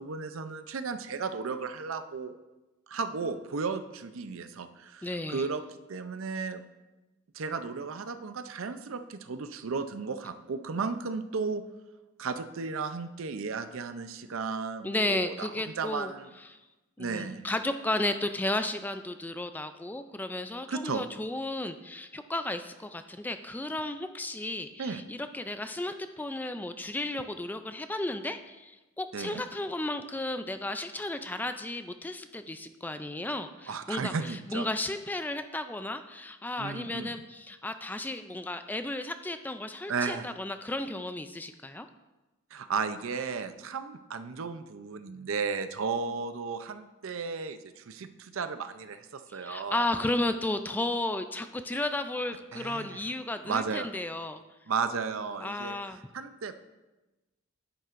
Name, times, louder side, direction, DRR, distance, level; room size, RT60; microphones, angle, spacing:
voice 1, 0.0-2.4 2.9-5.6 5.9-6.6 7.3-11.6 12.2-15.5 15.8-16.3 17.0-17.5 20.7-21.0 24.8-25.0 29.1-29.4 33.7-34.7 36.6-37.1 39.9-40.3 42.5-49.9 52.5-53.0 53.4-53.9 54.7-56.5, right 5 dB, 75° right, 10 dB, 0.6 m, -34 dB
voice 2, 5.0-5.5 14.8-16.1 16.5-16.6 17.0-41.9 49.4-54.4 55.4-56.0, left 2 dB, 10° left, 9 dB, 0.3 m, -34 dB
10.0 x 9.3 x 2.5 m, 1.1 s
head